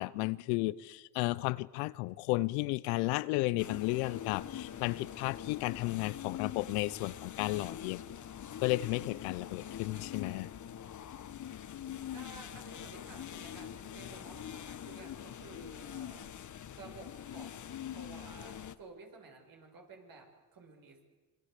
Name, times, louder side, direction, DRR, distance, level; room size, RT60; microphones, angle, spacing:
voice 1, 0.0-8.0 8.6-10.5, left 20 dB, 90° left, 0.9 m, -33 dB
sound 1, 3.6-18.8, left 10 dB, 45° left, 1.4 m, -44 dB
voice 2, 12.1-16.3 16.8-21.1, right 3 dB, 55° right, 7.1 m, -53 dB
27.0 x 25.0 x 8.4 m
supercardioid pair, 75°, 40 cm